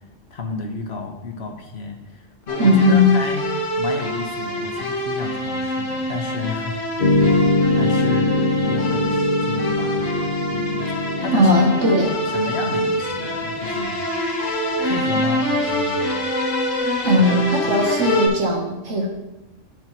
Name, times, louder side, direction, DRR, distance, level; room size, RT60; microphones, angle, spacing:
voice 1, 0.3-3.5 3.8-7.2 7.7-10.1 10.5-11.5 11.9-12.1 12.3-13.9 14.8-16.1 17.7-18.2, left 4 dB, 60° left, 3 dB, 1.2 m, -31 dB
sound 1, 2.5-18.3, equal, 85° left, 1.8 m, -25 dB
voice 2, 2.6-3.2 11.3-12.1 17.0-19.1, left 1 dB, 70° right, -1 dB, 1.4 m, -17 dB
sound 2, 7.0-13.5, left 2 dB, 45° left, 0.7 m, -22 dB
12.0 x 4.6 x 3.0 m, 1.0 s
omnidirectional pair, 1.3 m